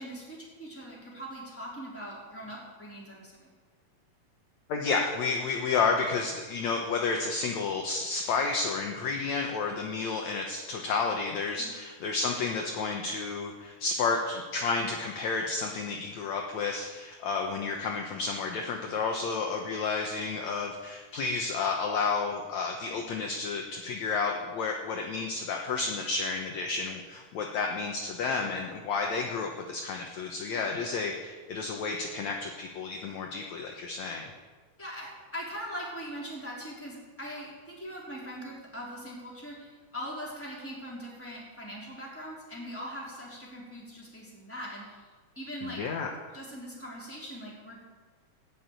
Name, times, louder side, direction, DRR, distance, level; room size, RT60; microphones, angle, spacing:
voice 1, 0.0-3.5 11.6-11.7 34.8-45.1 45.4-45.8 46.3-47.8, equal, 5° left, -5 dB, 3.7 m, -41 dB
voice 2, 4.7-34.2 45.6-46.1, left 4 dB, 65° left, 2 dB, 2.0 m, -31 dB
18.0 x 6.3 x 9.1 m, 1.4 s
omnidirectional pair, 4.0 m